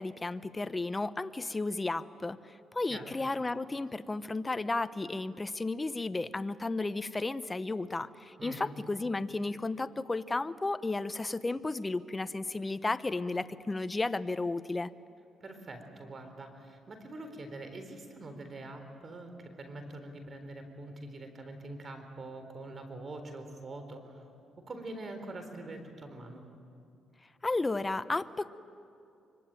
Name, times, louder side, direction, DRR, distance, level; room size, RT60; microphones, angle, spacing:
voice 1, 0.0-14.9 27.4-28.5, left 2 dB, 20° left, 13 dB, 0.9 m, -33 dB
voice 2, 8.4-8.7 15.4-24.2 24.6-26.5, right 2 dB, 40° right, 7 dB, 4.0 m, -44 dB
25.0 x 24.0 x 9.0 m, 2.5 s
cardioid pair, 90°, 0 cm